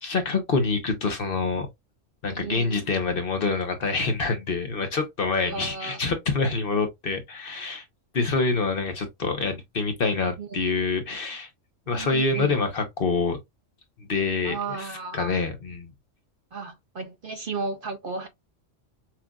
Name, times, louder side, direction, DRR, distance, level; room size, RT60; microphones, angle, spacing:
voice 1, 0.0-1.7 2.2-7.8 8.1-11.5 11.9-13.4 14.1-14.6 15.1-15.9, left 4 dB, 50° left, 0.9 m, -26 dB
voice 2, 2.3-2.9 5.5-6.0 10.4-10.5 11.9-12.6 14.4-15.4 16.5-18.3, right 4 dB, 55° right, 0.7 m, -34 dB
5.9 x 2.5 x 2.3 m
omnidirectional pair, 1.3 m